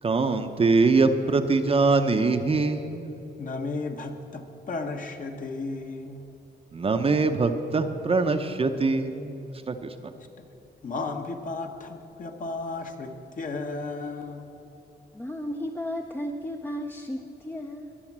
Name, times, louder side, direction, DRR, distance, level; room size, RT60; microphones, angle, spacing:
voice 1, 0.0-3.2 6.7-10.1, right 3 dB, 30° right, 7 dB, 0.7 m, -23 dB
voice 2, 3.4-6.3 10.2-10.5 10.8-14.5, left 3 dB, 45° left, 4 dB, 1.2 m, -34 dB
voice 3, 15.1-17.9, left 1 dB, 10° left, 3 dB, 0.6 m, -34 dB
21.0 x 7.1 x 7.4 m, 2.9 s
wide cardioid pair, 130°, 18 cm